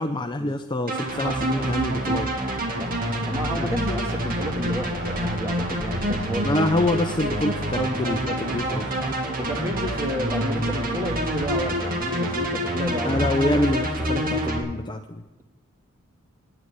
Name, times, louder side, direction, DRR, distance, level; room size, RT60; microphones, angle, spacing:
voice 1, 0.0-2.3 3.6-3.8 6.4-9.0 13.0-15.2, left 1 dB, 20° left, 6 dB, 0.6 m, -26 dB
sound 1, 0.9-14.6, right 1 dB, 40° right, 2.2 m, -27 dB
voice 2, 2.8-7.0 8.0-8.2 9.0-13.7, equal, 15° right, 3 dB, 1.8 m, -32 dB
9.8 x 9.4 x 9.6 m, 1.1 s
head